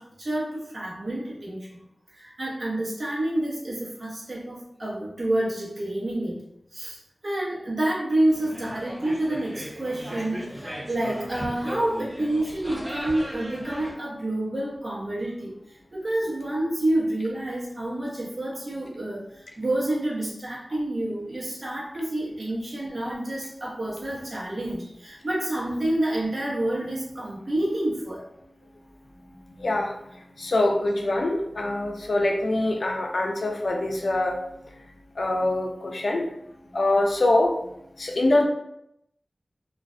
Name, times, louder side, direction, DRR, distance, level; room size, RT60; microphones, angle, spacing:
voice 1, 0.0-1.7 2.1-6.4 6.7-15.5 15.9-28.2, right 1 dB, 60° right, -5 dB, 0.8 m, -28 dB
sound 1, 8.3-13.9, equal, 20° right, 0.7 m, -37 dB
voice 2, 29.5-29.9 30.4-34.4 35.2-36.2 36.7-37.5 38.0-38.5, left 2 dB, 85° left, 1 dB, 0.4 m, -24 dB
2.4 x 2.1 x 2.5 m, 0.78 s
wide cardioid pair, 80°, 0 cm